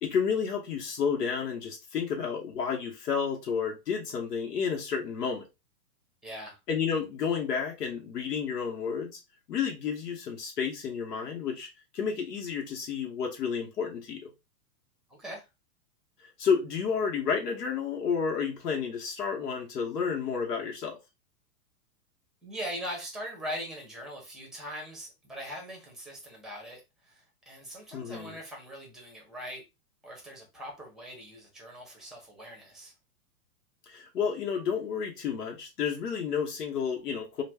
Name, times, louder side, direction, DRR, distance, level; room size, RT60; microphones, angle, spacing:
voice 1, 0.0-5.4 6.7-9.2 9.5-14.3 16.4-21.0 27.9-28.4 33.9-37.4, left 6 dB, 85° left, 1.0 m, -31 dB
voice 2, 6.2-6.6 15.1-15.4 22.4-29.6 30.0-32.9, equal, ahead, 0.7 m, -41 dB
2.5 x 2.2 x 3.3 m
hypercardioid pair, 135°, 47 cm